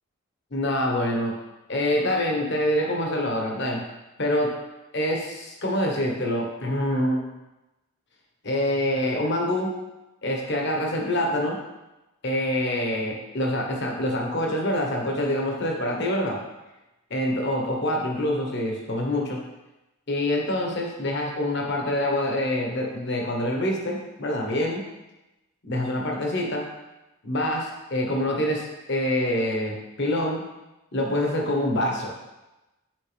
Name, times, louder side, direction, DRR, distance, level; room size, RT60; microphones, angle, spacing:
voice 1, 0.5-1.3 1.7-3.8 4.2-4.6 4.9-7.2 8.4-9.7 10.2-11.6 12.2-16.4 17.1-19.4 20.1-24.8 25.6-26.7 27.2-30.4 30.9-32.1, left 1 dB, 50° left, 0 dB, 1.2 m, -26 dB
7.6 x 4.8 x 3.4 m, 1.0 s
head